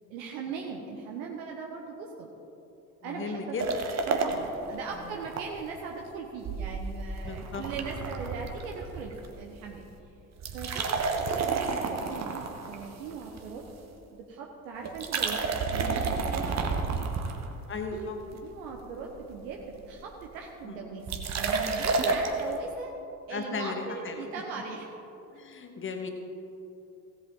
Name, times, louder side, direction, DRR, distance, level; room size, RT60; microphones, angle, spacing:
voice 1, 0.1-2.3 3.0-3.6 4.1-9.8 10.5-13.6 14.1-17.1 17.9-18.1 18.4-22.9 23.3-24.9, right 5 dB, 65° right, 0 dB, 1.1 m, -39 dB
voice 2, 3.0-3.7 5.0-5.1 7.2-7.6 17.7-18.2 20.6-20.8 22.1-22.2 23.3-24.4 25.3-26.1, left 4 dB, 25° left, 5 dB, 1.3 m, -36 dB
sound 1, 3.6-5.4 5.8-5.9 6.4-9.3 9.6-9.9 10.3-13.7 14.9-17.8 18.3-18.8 19.1-19.2 19.4-20.0 21.1-22.4, right 4 dB, 35° right, 1.3 m, -31 dB
16.5 x 8.1 x 3.8 m, 2.9 s
figure-of-eight pair, 55°, 44 cm